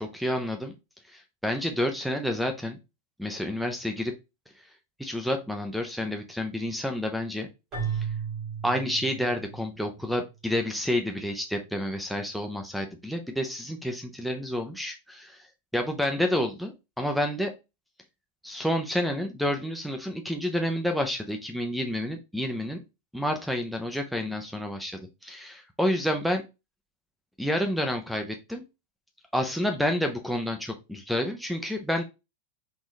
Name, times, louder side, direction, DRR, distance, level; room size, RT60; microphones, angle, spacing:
voice 1, 0.0-0.8 1.1-2.8 3.2-4.1 5.0-7.5 7.9-8.1 8.6-15.4 15.7-17.5 18.4-22.8 23.1-26.4 27.4-28.6 29.3-32.0, left 1 dB, ahead, 5 dB, 0.5 m, -29 dB
Keyboard (musical), 7.7-10.0, right 7 dB, 25° right, 2.4 m, -34 dB
3.9 x 3.8 x 3.1 m, 0.25 s
supercardioid pair, 170°, 0 cm